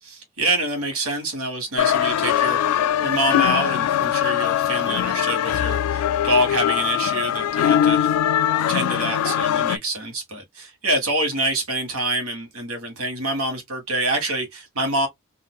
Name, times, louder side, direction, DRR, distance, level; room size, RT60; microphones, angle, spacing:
voice 1, 0.0-8.1 8.7-15.1, right 1 dB, 80° right, 1.5 m, -26 dB
sound 1, 1.8-9.8, left 10 dB, 90° left, 0.3 m, -21 dB
4.1 x 2.6 x 2.3 m
head